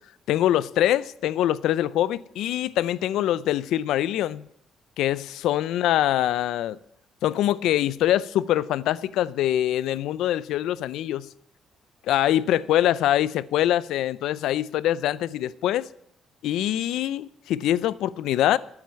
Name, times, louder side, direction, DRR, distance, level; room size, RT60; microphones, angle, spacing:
voice 1, 0.3-4.4 5.0-6.8 7.2-11.3 12.1-15.9 16.4-18.6, left 12 dB, 85° left, 0.4 m, -24 dB
9.5 x 8.5 x 8.3 m
cardioid pair, 110°, 0 cm